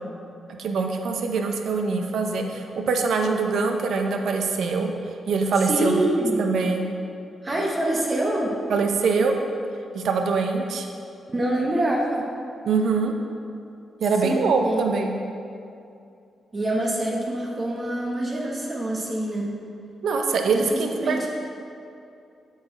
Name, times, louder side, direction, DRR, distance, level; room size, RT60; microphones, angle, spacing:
voice 1, 0.6-4.9 5.3-6.0 6.4-6.9 8.7-9.3 9.9-10.9 12.6-13.1 14.0-15.1 20.0-21.3, right 4 dB, 75° right, 4 dB, 0.7 m, -23 dB
voice 2, 5.7-6.4 7.4-8.6 11.3-12.3 14.2-14.8 16.5-19.5 20.5-21.3, right 1 dB, 30° right, -2 dB, 1.0 m, -25 dB
8.0 x 4.9 x 4.4 m, 2.6 s
cardioid pair, 90°, 0 cm